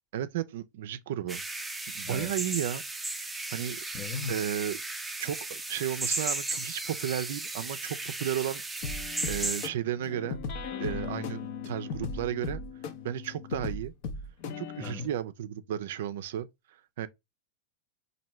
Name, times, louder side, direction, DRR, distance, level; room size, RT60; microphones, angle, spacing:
voice 1, 0.1-1.7 1.9-2.8 3.5-3.8 4.3-4.8 5.2-8.9 9.2-10.4 10.8-12.6 13.0-13.9 14.6-17.1, right 11 dB, 70° right, 0.4 m, -34 dB
sound 1, 1.3-9.7, right 2 dB, 10° right, 0.5 m, -35 dB
voice 2, 3.9-4.4 14.8-15.1, left 5 dB, 25° left, 0.9 m, -37 dB
sound 2, 8.8-14.9, left 5 dB, 55° left, 0.7 m, -37 dB
4.3 x 2.6 x 3.0 m
hypercardioid pair, 115°, 0 cm